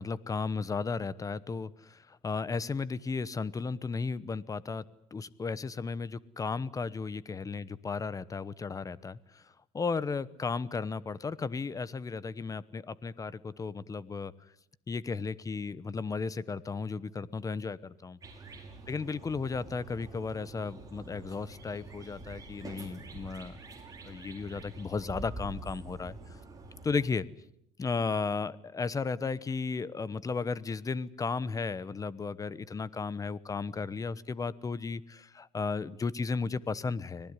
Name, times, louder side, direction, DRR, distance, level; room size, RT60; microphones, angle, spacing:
voice 1, 0.0-4.8 5.1-9.4 9.7-14.3 14.9-18.2 18.9-23.6 24.0-26.2 26.8-27.2 27.8-37.3, left 4 dB, 20° left, 19 dB, 1.0 m, -34 dB
sound 1, 18.2-27.1, right 3 dB, 25° right, 5.6 m, -46 dB
25.5 x 19.0 x 9.7 m, 0.76 s
cardioid pair, 130°, 16 cm